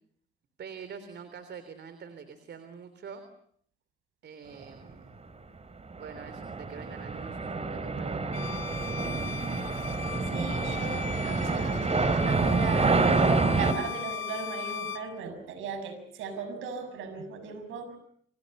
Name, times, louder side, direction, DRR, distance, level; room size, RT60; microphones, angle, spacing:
voice 1, 0.6-3.2 4.2-5.2 5.9-8.5, right 6 dB, 60° right, 10 dB, 3.5 m, -45 dB
sound 1, 5.9-13.7, right 3 dB, 30° right, 3.7 m, -27 dB
Bowed string instrument, 8.3-15.1, left 8 dB, 75° left, 1.7 m, -39 dB
voice 2, 10.3-11.9 12.3-13.1 13.5-18.0, right 5 dB, 85° right, 9 dB, 6.8 m, -38 dB
30.0 x 27.5 x 5.5 m, 0.64 s
cardioid pair, 90°, 20 cm